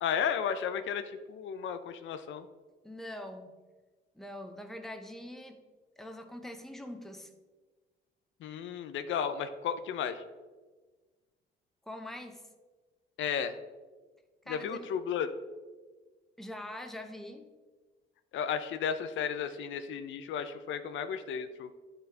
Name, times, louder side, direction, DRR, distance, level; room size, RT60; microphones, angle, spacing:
voice 1, 0.0-2.5 8.4-10.2 13.2-13.6 14.5-15.3 18.3-21.7, left 7 dB, 75° left, 9 dB, 0.5 m, -33 dB
voice 2, 2.8-3.6 4.1-5.6 6.0-7.3 11.9-12.5 14.5-14.9 16.4-17.5, left 1 dB, ahead, 5 dB, 0.8 m, -43 dB
10.5 x 4.0 x 3.3 m, 1.3 s
cardioid pair, 90°, 20 cm